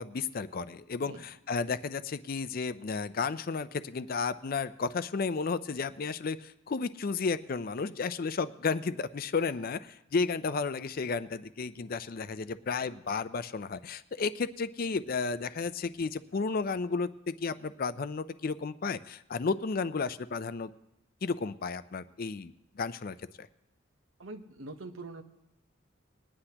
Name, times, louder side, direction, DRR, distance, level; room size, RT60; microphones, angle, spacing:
voice 1, 0.0-20.7 21.2-23.5, left 4 dB, 45° left, 14 dB, 0.4 m, -33 dB
voice 2, 24.2-25.2, right 2 dB, 75° right, 8 dB, 1.0 m, -43 dB
21.5 x 9.8 x 2.9 m, 0.83 s
head